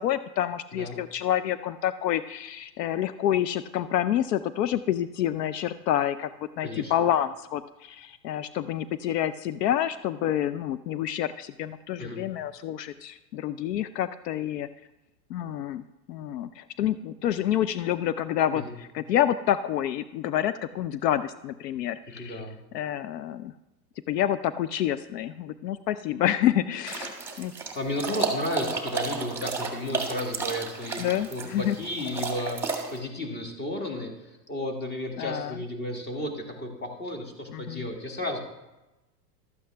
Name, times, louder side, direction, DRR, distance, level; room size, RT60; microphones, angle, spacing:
voice 1, 0.0-6.3 6.6-14.7 15.3-22.4 22.7-23.5 24.1-27.5 31.0-31.8 35.2-35.6 37.5-37.9, left 11 dB, 75° left, 13 dB, 0.6 m, -28 dB
voice 2, 12.0-12.3 18.5-18.7 22.1-22.6 27.7-38.4, left 1 dB, 20° left, 3 dB, 1.6 m, -33 dB
sound 1, 26.9-33.0, right 4 dB, 5° right, 1.7 m, -32 dB
12.5 x 8.4 x 3.4 m, 1.0 s
hypercardioid pair, 115°, 50 cm